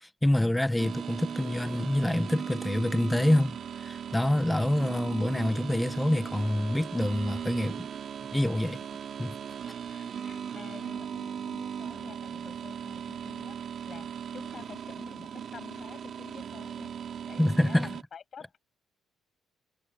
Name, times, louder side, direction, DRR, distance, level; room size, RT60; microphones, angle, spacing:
voice 1, 0.0-7.9 8.3-8.8 9.2-9.3 17.4-17.9, left 1 dB, 10° left, 0.9 m, -26 dB
sound 1, 0.8-18.0, right 8 dB, 60° right, 2.4 m, -38 dB
voice 2, 8.6-8.9 9.9-16.9 17.3-18.6, left 7 dB, 50° left, 7.5 m, -49 dB
cardioid pair, 90°, 0 cm